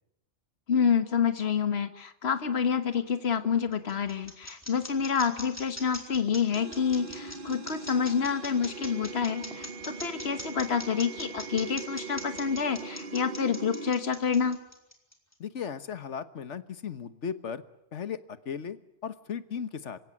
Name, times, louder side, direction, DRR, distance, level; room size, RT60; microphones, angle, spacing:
voice 1, 0.7-14.6, left 6 dB, 60° left, 10 dB, 1.7 m, -28 dB
sound 1, 3.4-4.2 6.3-7.3 9.5-10.3 12.8-13.5, equal, 5° right, 4.2 m, -54 dB
sound 2, 3.5-15.3, left 1 dB, 10° left, 3.9 m, -42 dB
sound 3, 6.5-13.9, right 4 dB, 45° right, 1.4 m, -41 dB
voice 2, 15.4-17.6 17.9-18.8 19.0-20.0, left 7 dB, 75° left, 13 dB, 1.5 m, -36 dB
27.5 x 16.5 x 9.8 m, 0.84 s
omnidirectional pair, 1.2 m